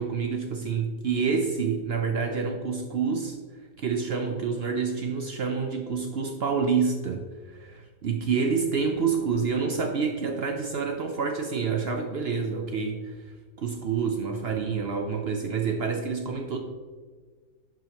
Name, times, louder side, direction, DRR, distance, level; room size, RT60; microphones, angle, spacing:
voice 1, 0.0-3.4 3.8-13.1 13.6-16.6, right 5 dB, 65° right, 4 dB, 0.6 m, -28 dB
10.5 x 4.9 x 2.9 m, 1.5 s
omnidirectional pair, 1.7 m